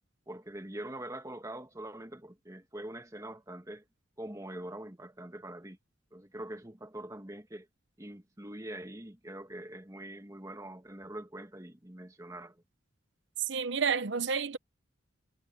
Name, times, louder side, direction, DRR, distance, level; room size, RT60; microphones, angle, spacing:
voice 1, 0.3-3.8 4.2-5.8 6.1-7.7 8.0-12.6, right 1 dB, 15° right, 1.6 m, -44 dB
voice 2, 13.5-14.6, right 5 dB, 60° right, 0.7 m, -30 dB
head